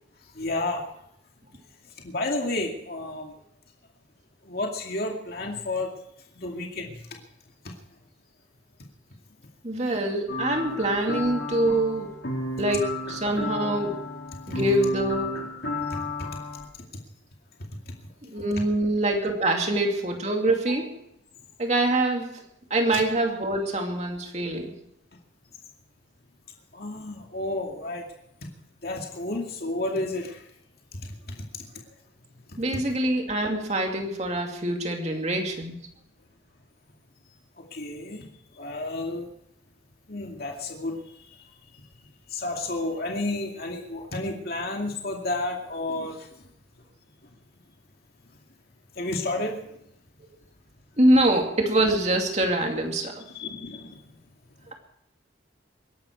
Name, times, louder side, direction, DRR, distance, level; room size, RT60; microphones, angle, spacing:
voice 1, 0.4-0.8 2.0-3.3 4.5-5.9 6.4-6.9 14.5-14.6 22.9-23.0 26.7-28.0 28.8-30.4 32.5-32.6 37.7-38.2 38.6-39.3 40.1-40.9 42.3-46.2 49.0-49.6 53.3-54.0, left 2 dB, 55° left, 1 dB, 2.4 m, -31 dB
voice 2, 9.6-12.2 12.6-14.0 14.5-15.4 18.2-20.9 21.6-22.4 22.7-24.7 32.6-35.7 51.0-53.2, right 1 dB, 40° right, 3 dB, 2.6 m, -24 dB
sound 1, 10.3-16.7, left 2 dB, 85° left, 3.8 m, -33 dB
22.5 x 11.5 x 4.7 m, 0.76 s
head